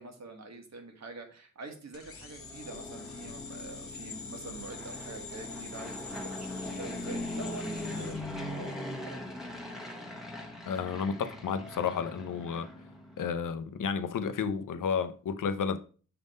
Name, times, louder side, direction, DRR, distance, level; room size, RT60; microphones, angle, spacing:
voice 1, 0.0-9.2, right 3 dB, 55° right, 1.4 m, -46 dB
sound 1, 1.9-9.0, left 4 dB, 45° left, 0.9 m, -45 dB
Fixed-wing aircraft airplane, 2.3-13.4, left 1 dB, ahead, 1.1 m, -41 dB
voice 2, 10.7-12.7 13.2-15.8, left 6 dB, 75° left, 0.6 m, -32 dB
6.7 x 3.6 x 5.1 m
wide cardioid pair, 155°, 32 cm